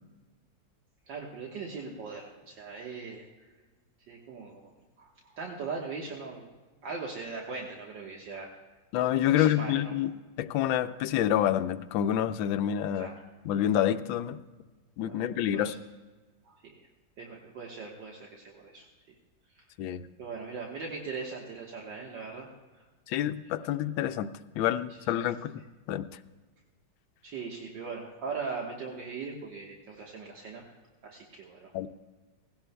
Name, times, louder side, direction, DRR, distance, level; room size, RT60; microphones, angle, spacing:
voice 1, 1.1-3.2 4.1-4.6 5.0-6.5 6.8-8.5 9.3-9.9 13.0-13.2 15.1-15.2 15.5-15.8 16.5-16.9 17.2-18.9 19.6-19.7 20.2-22.5 22.7-22.8 27.2-30.6 31.0-31.7, right 4 dB, 70° right, -1 dB, 2.0 m, -40 dB
voice 2, 8.9-10.1 10.4-13.1 13.4-14.4 15.0-15.7 19.8-20.1 23.1-25.6 25.9-26.1 31.7-31.9, left 11 dB, 85° left, 11 dB, 1.4 m, -28 dB
19.0 x 16.0 x 2.2 m, 1.3 s
omnidirectional pair, 2.1 m